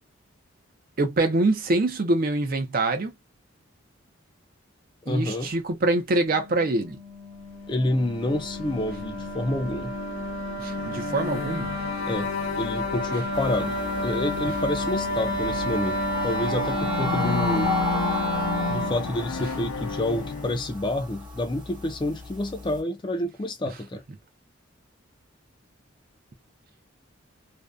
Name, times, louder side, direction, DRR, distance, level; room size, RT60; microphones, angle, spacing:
voice 1, 1.0-3.1 5.1-7.0 10.6-11.7, right 2 dB, 45° right, 0.4 m, -24 dB
voice 2, 5.1-5.5 7.7-9.9 12.1-17.8 18.7-24.0, left 1 dB, 25° left, 0.4 m, -28 dB
Wind instrument woodwind instrument, 6.1-19.0, equal, 70° right, 0.9 m, -32 dB
sound 1, 7.8-20.8, left 4 dB, 85° left, 0.5 m, -33 dB
sound 2, 13.3-22.8, left 2 dB, 20° right, 0.8 m, -34 dB
2.6 x 2.1 x 2.3 m
head